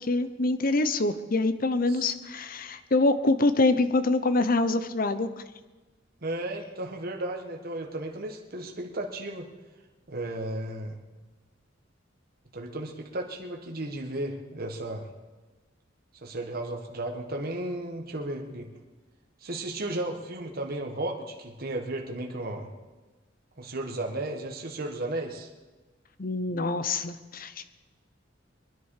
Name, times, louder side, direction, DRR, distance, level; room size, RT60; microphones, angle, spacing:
voice 1, 0.0-5.3 26.2-27.7, left 2 dB, 45° left, 12 dB, 0.8 m, -25 dB
voice 2, 6.2-9.5 10.1-11.0 12.5-15.1 16.2-18.7 19.4-22.7 23.6-25.5, right 1 dB, 50° right, 1 dB, 1.7 m, -34 dB
24.0 x 10.5 x 4.9 m, 1.2 s
head